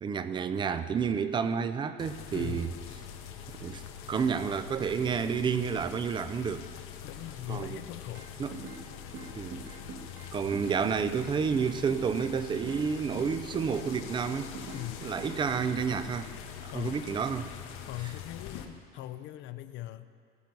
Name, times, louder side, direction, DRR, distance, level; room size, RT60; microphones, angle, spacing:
voice 1, 0.0-2.7 3.6-3.8 4.1-6.7 7.5-7.8 8.4-8.5 9.4-9.6 10.3-14.5 15.0-16.3 16.6-17.5 18.0-18.1, right 6 dB, 20° right, 12 dB, 0.5 m, -30 dB
sound 1, 2.0-18.7, left 8 dB, 90° left, 1.2 m, -44 dB
voice 2, 2.3-2.7 7.0-8.3 14.7-15.1 16.7-17.1 17.9-20.1, left 15 dB, 60° left, 12 dB, 0.6 m, -40 dB
sound 2, 8.1-8.8 9.1-10.8 11.1-12.9 13.2-14.9 15.2-16.1, right 4 dB, 60° right, 1.7 m, -44 dB
19.0 x 7.8 x 5.3 m, 2.2 s
cardioid pair, 165°, 21 cm